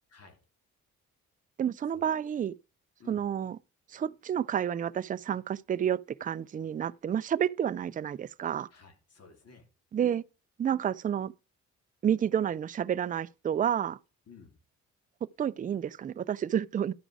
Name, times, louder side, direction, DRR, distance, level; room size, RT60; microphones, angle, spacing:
voice 1, 1.6-2.5 3.1-3.6 3.9-8.7 9.9-10.2 10.6-11.3 12.0-14.0 15.4-16.9, right 9 dB, 30° right, 0.4 m, -30 dB
voice 2, 8.7-9.7 14.3-14.6, left 5 dB, 55° left, 2.8 m, -54 dB
11.0 x 5.1 x 4.8 m
cardioid pair, 90°, 30 cm